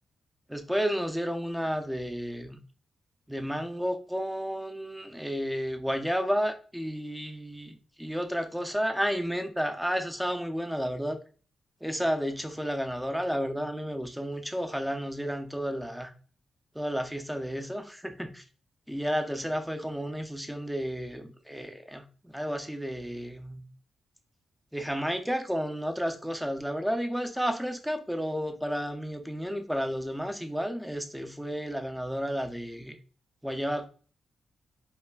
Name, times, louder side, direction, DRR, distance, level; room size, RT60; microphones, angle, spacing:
voice 1, 0.5-2.6 3.3-11.2 11.8-16.1 16.7-18.4 18.9-23.7 24.7-33.0 33.4-33.9, equal, ahead, 6 dB, 0.5 m, -32 dB
5.4 x 2.1 x 2.3 m, 0.40 s
cardioid pair, 105°, 0 cm